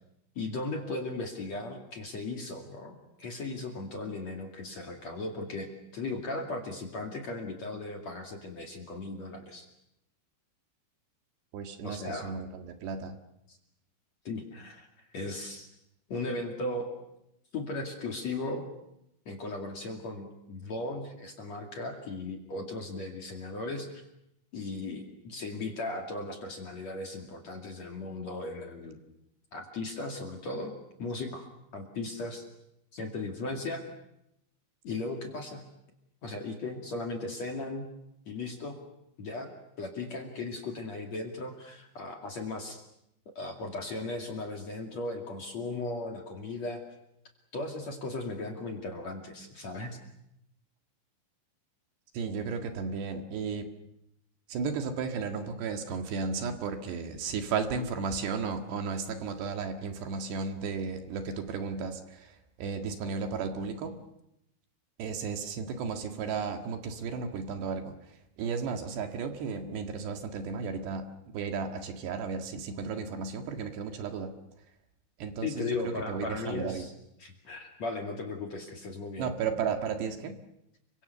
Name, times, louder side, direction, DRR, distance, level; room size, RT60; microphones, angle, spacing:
voice 1, 0.3-9.7 11.8-12.3 13.5-13.6 14.2-14.9 15.1-15.7 16.1-16.9 17.5-18.7 19.3-24.0 24.5-29.0 29.5-30.7 31.0-31.5 31.7-32.4 32.9-33.8 34.8-35.7 36.2-37.9 38.3-38.7 39.2-39.5 39.8-42.8 43.3-46.8 47.5-50.0 75.4-76.9 77.2-79.3, left 2 dB, 45° left, 3 dB, 2.9 m, -37 dB
voice 2, 11.5-13.2 52.1-53.7 54.5-64.0 65.0-67.9 68.4-71.1 71.3-74.3 75.2-76.8 79.2-80.4, right 5 dB, 65° right, 5 dB, 3.7 m, -34 dB
30.0 x 24.5 x 6.9 m, 0.82 s
omnidirectional pair, 5.5 m